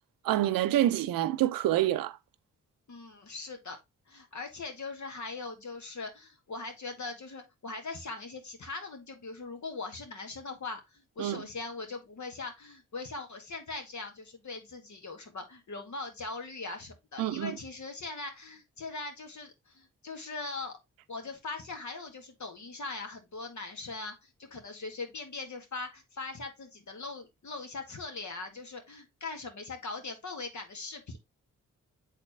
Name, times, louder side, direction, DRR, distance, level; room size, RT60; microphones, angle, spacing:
voice 1, 0.2-2.2 11.2-11.4 17.2-17.6, right 13 dB, 90° right, 0.5 m, -27 dB
voice 2, 2.9-3.8 4.1-20.8 21.1-31.2, left 3 dB, 60° left, 1.9 m, -41 dB
7.4 x 4.2 x 3.1 m
supercardioid pair, 40°, 33 cm